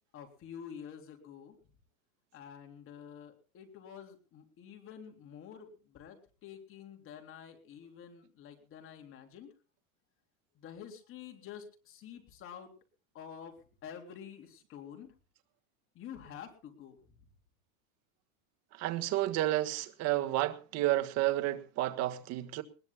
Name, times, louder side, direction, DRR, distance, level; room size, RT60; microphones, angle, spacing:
voice 1, 0.1-1.6 2.3-9.5 10.6-12.7 13.1-13.5 13.8-15.1 16.0-17.0, left 8 dB, 30° left, 3.8 m, -48 dB
voice 2, 18.7-22.6, right 15 dB, 40° right, 1.6 m, -31 dB
21.0 x 20.0 x 2.3 m
supercardioid pair, 155°, 40 cm